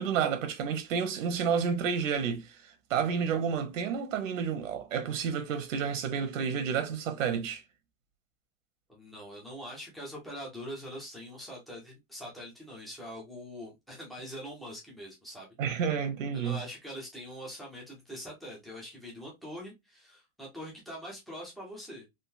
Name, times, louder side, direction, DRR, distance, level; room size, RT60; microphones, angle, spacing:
voice 1, 0.0-7.6 15.6-16.6, right 7 dB, 75° right, 1.0 m, -30 dB
voice 2, 8.9-15.8 16.3-22.0, equal, ahead, 0.3 m, -43 dB
3.7 x 2.5 x 2.6 m
supercardioid pair, 165°, 39 cm